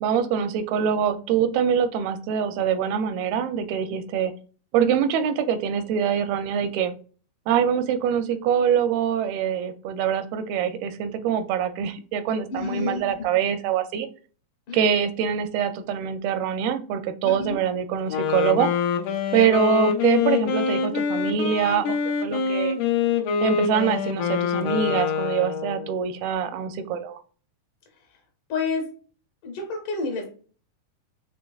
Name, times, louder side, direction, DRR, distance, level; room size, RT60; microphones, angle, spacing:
voice 1, 0.0-4.3 4.7-6.9 7.5-14.1 14.7-18.7 19.3-22.0 22.2-22.8 23.4-27.2, right 8 dB, 85° right, 9 dB, 2.4 m, -24 dB
voice 2, 12.5-13.4 14.7-14.8 17.2-17.6 19.3-19.6 28.1-28.2 28.5-28.9 29.4-30.3, left 4 dB, 70° left, 3 dB, 2.2 m, -30 dB
Wind instrument woodwind instrument, 18.1-26.0, left 6 dB, 85° left, 1.8 m, -25 dB
6.2 x 3.1 x 2.3 m, 0.40 s
omnidirectional pair, 4.3 m